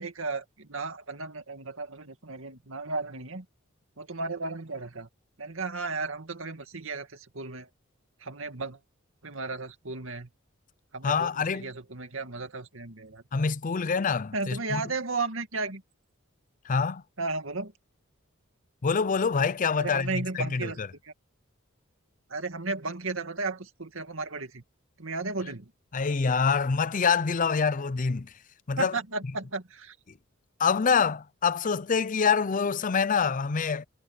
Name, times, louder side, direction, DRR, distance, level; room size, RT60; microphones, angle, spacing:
voice 1, 0.0-3.5 4.0-5.1 5.4-7.7 8.2-8.8 9.2-10.3 10.9-13.2 14.3-15.8 17.2-17.7 19.8-20.8 21.0-21.1 22.3-24.6 25.0-25.7 28.8-30.0, right 3 dB, 75° right, 2.4 m, -34 dB
voice 2, 11.0-11.7 13.3-14.8 16.6-17.0 18.8-20.9 25.9-28.3 28.7-28.9 30.6-33.9, left 5 dB, 40° left, 0.5 m, -26 dB
head